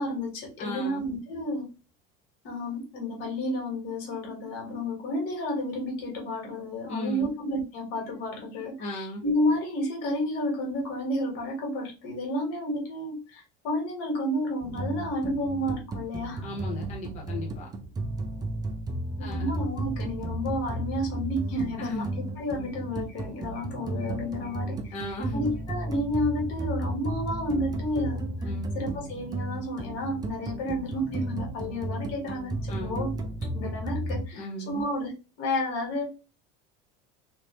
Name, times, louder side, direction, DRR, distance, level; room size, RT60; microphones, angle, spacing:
voice 1, 0.0-1.7 2.4-16.5 19.2-24.9 25.3-28.3 28.7-33.1 33.5-36.1, left 1 dB, 75° left, 1 dB, 1.8 m, -31 dB
voice 2, 0.6-1.0 6.9-7.3 8.8-9.2 16.4-17.7 19.2-19.5 21.8-22.1 24.9-25.5 28.4-28.7 32.7-33.0 34.3-34.9, left 1 dB, 35° left, -1 dB, 0.9 m, -35 dB
sound 1, 14.6-34.3, right 1 dB, 20° right, 0.5 m, -34 dB
3.2 x 2.7 x 3.1 m, 0.31 s
cardioid pair, 155°, 20 cm